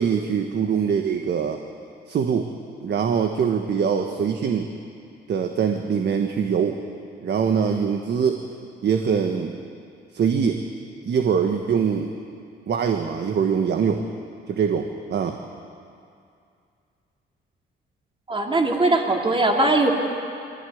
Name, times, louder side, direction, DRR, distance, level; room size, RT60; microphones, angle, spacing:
voice 1, 0.0-1.6 2.1-2.5 2.8-4.7 5.3-6.8 7.2-8.4 8.8-9.6 10.1-10.6 11.0-12.1 12.7-14.0 14.5-15.4, right 7 dB, 60° right, 4 dB, 1.4 m, -23 dB
voice 2, 18.3-19.9, right 2 dB, 25° right, 1 dB, 3.0 m, -20 dB
22.0 x 15.5 x 9.4 m, 2.4 s
cardioid pair, 90°, 20 cm